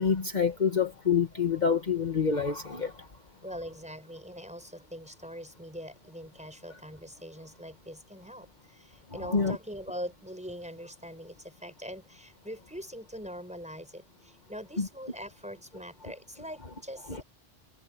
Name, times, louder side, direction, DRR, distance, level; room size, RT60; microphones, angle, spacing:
voice 1, 0.0-3.1 9.1-9.6 14.8-14.9 17.1-17.2, left 6 dB, 45° left, 1.5 m, -27 dB
voice 2, 3.4-17.2, equal, 5° right, 6.6 m, -43 dB
omnidirectional pair, 1.1 m